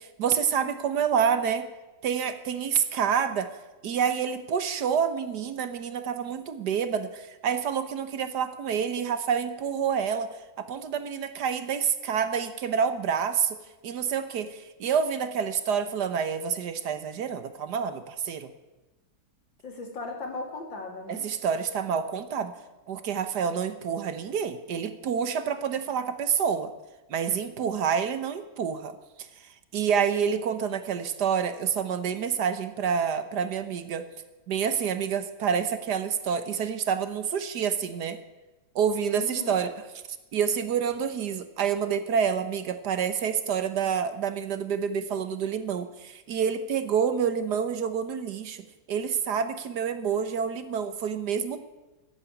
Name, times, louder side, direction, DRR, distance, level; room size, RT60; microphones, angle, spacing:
voice 1, 0.0-1.7 2.0-3.5 3.8-13.6 13.8-18.5 21.1-22.5 22.9-26.7 27.1-29.3 29.7-34.0 34.5-38.2 38.7-39.7 40.3-51.6, right 7 dB, 65° right, 11 dB, 1.5 m, -28 dB
voice 2, 19.6-21.3 39.2-39.6, left 3 dB, 85° left, 3 dB, 3.3 m, -37 dB
14.0 x 9.0 x 9.9 m, 1.1 s
omnidirectional pair, 2.0 m